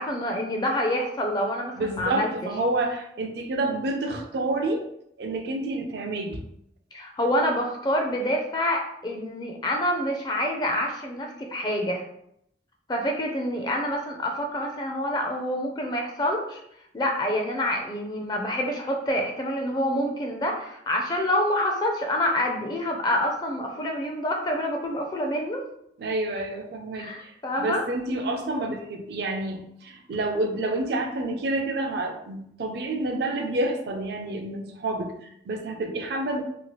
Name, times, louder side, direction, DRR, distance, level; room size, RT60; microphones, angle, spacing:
voice 1, 0.0-2.3 6.9-12.0 12.9-16.6 16.9-25.6 26.9-27.8, left 1 dB, 25° left, 1 dB, 0.4 m, -27 dB
voice 2, 1.8-4.9 5.2-6.4 26.0-27.3 27.6-36.4, right 2 dB, 65° right, 5 dB, 0.4 m, -29 dB
2.8 x 2.3 x 3.0 m, 0.75 s
head